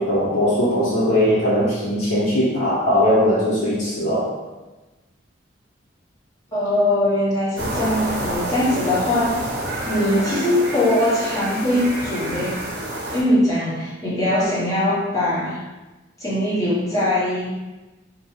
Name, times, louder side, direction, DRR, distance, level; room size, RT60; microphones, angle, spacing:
voice 1, 0.0-4.3, equal, 90° left, -8 dB, 0.6 m, -19 dB
voice 2, 6.5-9.4 9.8-12.6 13.1-15.6 16.2-17.5, left 1 dB, 15° left, -10 dB, 0.9 m, -21 dB
sound 1, 7.6-13.2, right 1 dB, 55° right, 0.6 m, -28 dB
2.5 x 2.2 x 3.0 m, 1.1 s
head